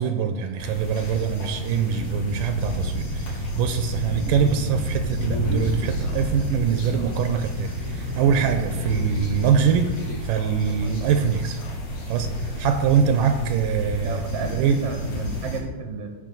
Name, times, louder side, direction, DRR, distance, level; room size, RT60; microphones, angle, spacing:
voice 1, 0.0-10.0 10.2-11.6 12.1-14.8, right 7 dB, 80° right, 7 dB, 2.2 m, -23 dB
sound 1, 0.6-15.6, equal, 50° left, 3.5 m, -30 dB
Human voice, 5.3-12.1, equal, 80° left, 3.8 m, -39 dB
voice 2, 13.8-16.2, right 5 dB, 65° right, 4 dB, 1.5 m, -33 dB
18.0 x 6.0 x 3.9 m, 1.2 s
omnidirectional pair, 3.9 m